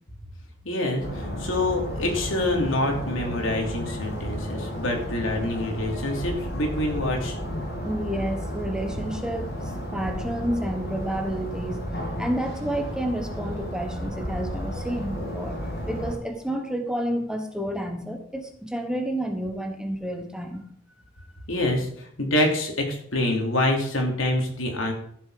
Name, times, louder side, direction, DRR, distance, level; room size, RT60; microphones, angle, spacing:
voice 1, 0.6-7.4 21.5-24.9, left 1 dB, 80° left, 1 dB, 3.2 m, -26 dB
sound 1, 1.0-16.2, equal, 55° left, 3.0 m, -33 dB
voice 2, 7.8-11.8 12.2-20.7 21.3-21.4, right 1 dB, 5° right, 4 dB, 1.3 m, -30 dB
14.5 x 7.4 x 5.1 m, 0.66 s
head